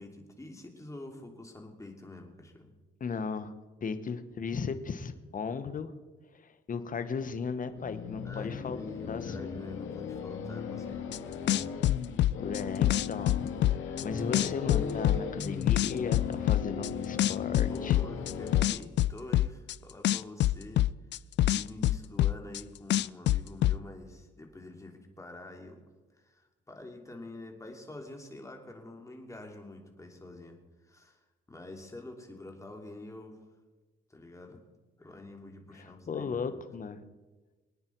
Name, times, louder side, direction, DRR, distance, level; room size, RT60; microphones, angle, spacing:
voice 1, 0.0-2.7 8.2-11.5 17.7-20.9 21.5-25.8 26.1-30.6 30.8-31.2 31.5-33.4 34.1-34.6 35.0-36.5, left 2 dB, 15° left, 2 dB, 2.9 m, -46 dB
voice 2, 3.0-3.5 3.8-5.9 6.3-8.8 9.1-9.4 12.4-13.5 13.8-18.0 35.7-37.0, left 5 dB, 40° left, 10 dB, 1.3 m, -36 dB
sound 1, 7.7-18.6, left 7 dB, 80° left, 1.9 m, -37 dB
sound 2, 11.1-11.2 11.5-14.0 14.3-16.9 17.2-19.7 20.0-22.6 22.9-23.8, left 14 dB, 65° left, 0.4 m, -25 dB
24.0 x 9.6 x 4.6 m, 1.3 s
cardioid pair, 90°, 20 cm